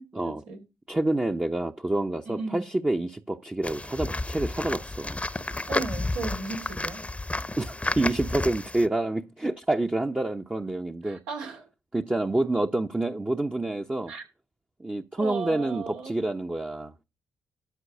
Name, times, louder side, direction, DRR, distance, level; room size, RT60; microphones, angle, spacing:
voice 1, 0.2-0.6 2.2-2.6 5.7-7.0 11.0-11.7 14.1-14.2 15.2-16.1, right 4 dB, 80° right, 2.7 m, -35 dB
voice 2, 0.9-5.2 7.6-11.2 11.9-14.1 14.8-17.0, right 2 dB, 20° right, 0.9 m, -28 dB
sound 1, 3.6-8.9, left 2 dB, 15° left, 0.9 m, -31 dB
13.0 x 4.7 x 6.1 m
hypercardioid pair, 45°, 7 cm